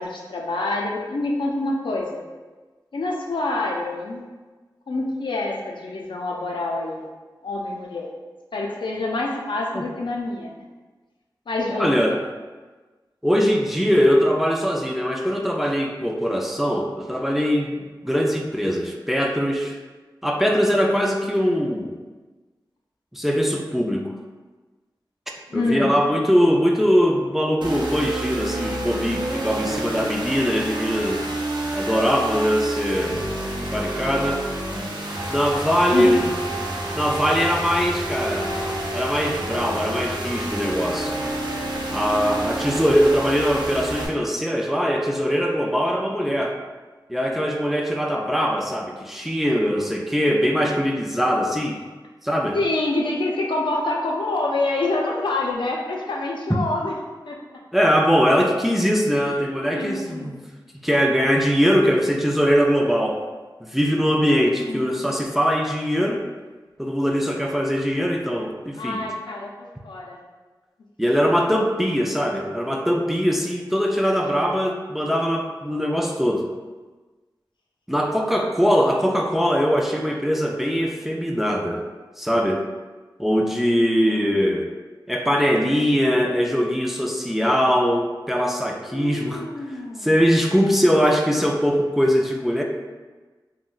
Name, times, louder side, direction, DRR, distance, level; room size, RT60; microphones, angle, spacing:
voice 1, 0.0-2.1 2.9-4.2 4.9-7.1 7.4-8.1 8.5-10.5 11.5-12.2 21.3-21.6 25.5-26.0 35.9-36.3 52.5-56.9 57.3-57.4 59.2-59.4 59.7-60.4 64.6-65.1 68.8-69.5 69.8-70.2 84.0-84.3 88.9-90.2, left 2 dB, 85° left, -1 dB, 0.4 m, -27 dB
voice 2, 11.7-12.2 13.2-19.8 20.2-22.0 23.1-24.1 25.5-31.2 31.7-33.2 33.6-34.4 35.3-36.3 36.9-38.5 38.9-41.2 41.9-46.6 47.1-51.8 52.2-52.6 56.5-56.6 57.7-60.4 60.8-63.2 63.6-66.2 66.8-69.0 71.0-76.4 77.9-81.8 82.2-82.6 83.2-84.7 85.1-89.5 90.0-92.6, equal, 5° right, 1 dB, 0.3 m, -21 dB
sound 1, 27.6-44.1, right 1 dB, 75° right, 0.5 m, -29 dB
2.4 x 2.1 x 3.7 m, 1.3 s
wide cardioid pair, 65°, 8 cm